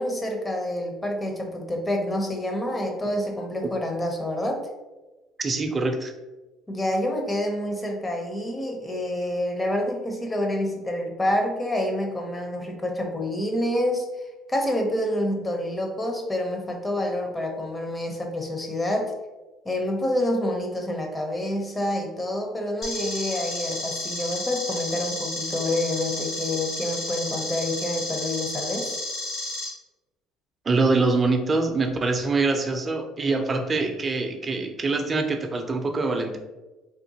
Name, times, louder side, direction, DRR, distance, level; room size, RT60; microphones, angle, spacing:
voice 1, 0.0-4.6 6.7-14.0 14.5-19.1 19.6-29.0, left 1 dB, 20° left, 2 dB, 0.7 m, -27 dB
voice 2, 5.4-6.1 30.6-36.4, right 3 dB, 30° right, 5 dB, 0.5 m, -24 dB
sound 1, 22.8-29.7, left 2 dB, 55° left, 1.4 m, -32 dB
3.6 x 2.5 x 2.8 m, 1.1 s
supercardioid pair, 85°, 0 cm